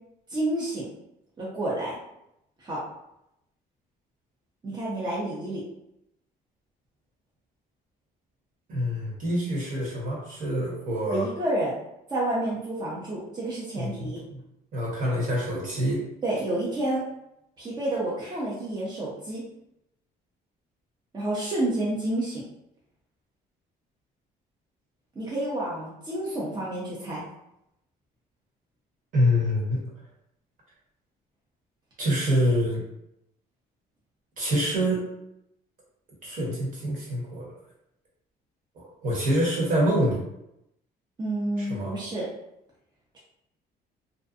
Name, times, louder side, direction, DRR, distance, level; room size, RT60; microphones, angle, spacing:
voice 1, 0.3-0.9 1.4-2.0 2.6-2.8 4.6-5.6 11.1-11.7 12.1-14.2 16.2-17.0 17.6-19.4 21.1-22.4 25.2-27.2 41.2-42.3, right 1 dB, 25° right, -6 dB, 0.6 m, -29 dB
voice 2, 8.7-11.2 13.8-14.4 14.7-16.0 29.1-29.8 32.0-32.8 34.4-35.0 36.2-37.4 38.8-40.2 41.6-41.9, equal, 55° right, -4 dB, 1.2 m, -26 dB
2.6 x 2.2 x 2.5 m, 0.83 s
cardioid pair, 110°, 17 cm